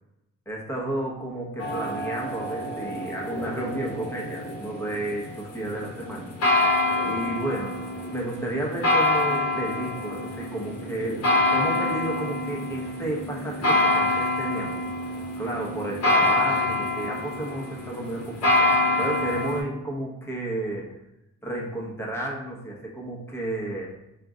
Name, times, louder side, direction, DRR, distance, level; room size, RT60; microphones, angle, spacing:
voice 1, 0.5-6.3 7.0-7.9 8.1-11.2 11.5-14.8 15.4-18.7 19.0-20.9 21.4-23.9, right 1 dB, 10° left, -3 dB, 1.0 m, -32 dB
sound 1, 1.6-19.6, left 2 dB, 55° left, 1.1 m, -26 dB
3.7 x 2.5 x 3.7 m, 0.91 s
cardioid pair, 90°, 30 cm